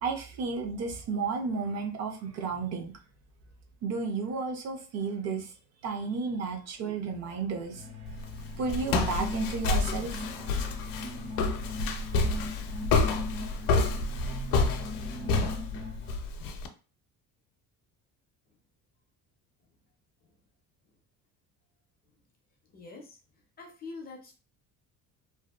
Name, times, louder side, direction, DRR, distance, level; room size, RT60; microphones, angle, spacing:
voice 1, 0.0-2.9 3.8-5.5 5.8-7.8 8.6-10.2, right 4 dB, 50° right, 4 dB, 0.5 m, -32 dB
sound 1, 7.7-16.2, left 2 dB, 80° right, 1.2 m, -40 dB
Walk footsteps, 8.1-16.7, left 3 dB, 75° left, 0.5 m, -29 dB
voice 2, 22.7-23.2 23.6-24.3, left 3 dB, 30° left, 2 dB, 0.4 m, -44 dB
2.6 x 2.1 x 2.3 m, 0.35 s
cardioid pair, 160°, 34 cm